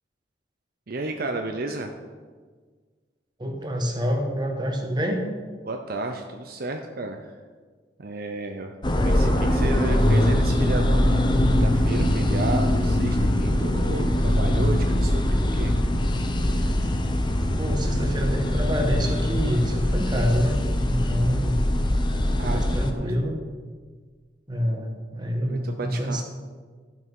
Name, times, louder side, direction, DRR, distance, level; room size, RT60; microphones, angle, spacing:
voice 1, 0.9-1.9 5.6-7.3 8.0-11.2 11.6-15.7 22.4-23.3 25.4-26.2, right 2 dB, 60° right, 4 dB, 0.7 m, -33 dB
voice 2, 3.4-5.3 17.6-21.6 22.4-23.3 24.5-26.2, equal, 25° right, 2 dB, 1.4 m, -27 dB
sound 1, 8.8-22.9, left 1 dB, 25° left, 0.8 m, -22 dB
12.0 x 6.0 x 5.4 m, 1.5 s
head